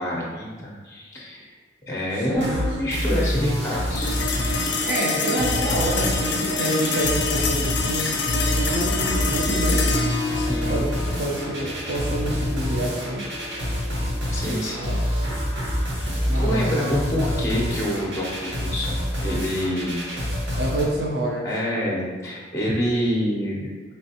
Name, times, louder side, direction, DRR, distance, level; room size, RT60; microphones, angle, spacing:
voice 1, 0.0-1.5 1.9-4.1 10.3-10.9 14.3-14.9 16.0-20.0 21.4-23.7, equal, 15° left, -3 dB, 0.5 m, -27 dB
voice 2, 2.3-3.0 4.9-8.1 8.5-9.8 10.7-10.9 11.2-13.2 14.5-15.0 16.2-16.8 20.5-21.5, right 1 dB, 60° right, -3 dB, 0.6 m, -28 dB
sound 1, 2.3-20.8, equal, 80° right, 1.2 m, -27 dB
sound 2, 3.9-14.6, left 3 dB, 60° left, 0.4 m, -27 dB
sound 3, 11.4-18.3, right 1 dB, 20° right, 0.7 m, -42 dB
4.3 x 3.2 x 2.8 m, 1.4 s
head